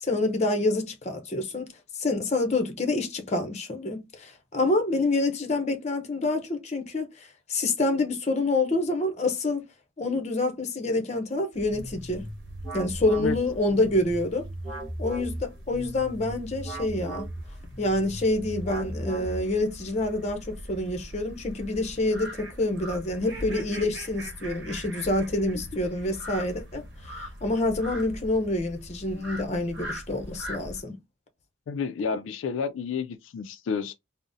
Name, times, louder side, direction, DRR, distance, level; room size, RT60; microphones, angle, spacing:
voice 1, 0.0-1.7 2.0-7.1 7.5-9.6 10.0-12.3 12.7-14.4 15.0-17.3 17.8-31.0, left 2 dB, 35° left, 0.6 m, -27 dB
sound 1, 11.5-30.8, equal, 60° right, 1.0 m, -42 dB
sound 2, 11.7-19.7, right 1 dB, 10° right, 1.6 m, -38 dB
voice 2, 31.7-33.9, left 5 dB, 80° left, 0.3 m, -30 dB
3.8 x 2.0 x 2.5 m
head